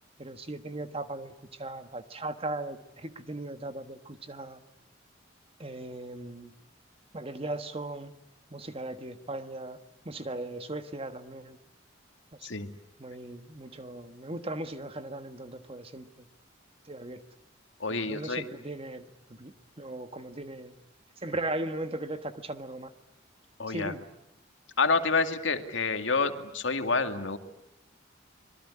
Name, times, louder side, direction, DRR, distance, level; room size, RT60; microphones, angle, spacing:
voice 1, 0.2-4.6 5.6-6.5 7.1-8.1 8.5-9.8 10.0-11.6 12.4-12.5 13.0-16.1 16.8-17.2 18.1-20.7 21.2-22.9 23.7-24.0, right 2 dB, 30° right, 9 dB, 1.5 m, -38 dB
voice 2, 17.8-18.4 23.6-23.9 24.8-27.4, left 4 dB, 70° left, 8 dB, 2.1 m, -28 dB
25.5 x 22.0 x 9.9 m, 0.83 s
head